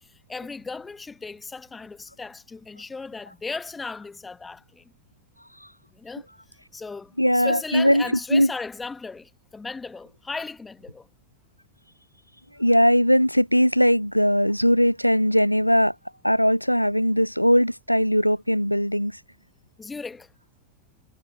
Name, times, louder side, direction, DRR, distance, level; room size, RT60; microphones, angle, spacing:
voice 1, 0.0-4.8 5.9-6.3 6.7-11.1 19.8-20.3, left 4 dB, 10° left, 1.6 m, -36 dB
voice 2, 7.2-8.0 8.3-8.5 12.6-15.9 16.2-19.1, equal, 90° left, 0.4 m, -19 dB
figure-of-eight pair, 90°, 0 cm